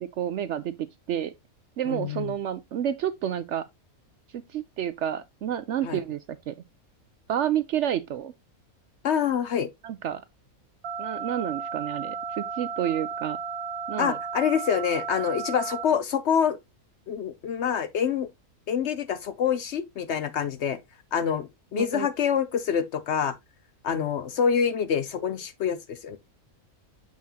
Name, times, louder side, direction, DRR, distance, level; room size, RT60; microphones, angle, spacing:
voice 1, 0.2-0.7 1.1-1.3 1.8-3.7 4.5-6.5 7.3-8.3 9.8-10.2 11.0-13.4 13.9-14.2 21.8-22.1, right 10 dB, 65° right, 0.8 m, -29 dB
voice 2, 1.9-2.3 5.8-6.0 9.0-9.7 14.0-16.6 17.1-18.3 18.7-20.8 21.1-23.3 23.8-26.2, left 7 dB, 60° left, 0.8 m, -26 dB
sound 1, 10.8-15.8, right 6 dB, 85° right, 1.4 m, -34 dB
7.5 x 5.6 x 2.8 m
omnidirectional pair, 1.5 m